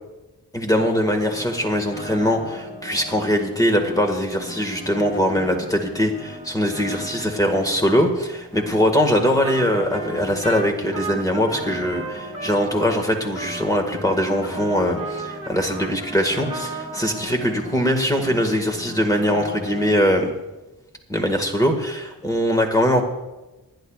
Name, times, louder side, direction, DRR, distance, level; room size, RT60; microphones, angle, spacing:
voice 1, 0.5-20.3 21.1-23.0, equal, 10° left, 3 dB, 1.7 m, -21 dB
Piano, 0.7-19.9, left 1 dB, 35° left, 4.8 m, -38 dB
Trumpet, 9.4-9.7 9.9-17.3, right 3 dB, 15° right, 1.6 m, -35 dB
28.0 x 10.5 x 2.4 m, 1.1 s
wide cardioid pair, 120°, 38 cm